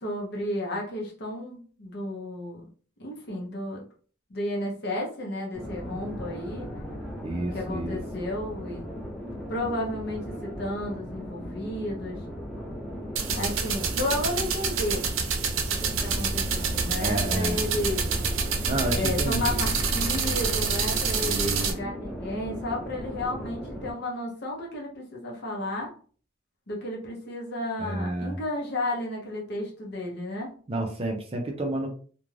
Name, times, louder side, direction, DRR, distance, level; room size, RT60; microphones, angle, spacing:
voice 1, 0.0-2.6 3.0-3.9 4.3-6.7 7.5-8.8 9.5-12.2 13.3-15.1 15.8-18.1 18.9-25.9 26.7-30.5, left 1 dB, 55° left, -1 dB, 0.7 m, -32 dB
sound 1, 5.5-23.9, equal, 5° left, 0.8 m, -37 dB
voice 2, 7.2-8.0 17.0-17.8 18.7-19.6 21.2-21.7 27.8-28.4 30.7-31.9, right 1 dB, 30° right, 2 dB, 0.4 m, -31 dB
sound 2, 13.2-21.7, right 5 dB, 85° right, 0.5 m, -27 dB
2.4 x 2.2 x 3.2 m, 0.42 s
head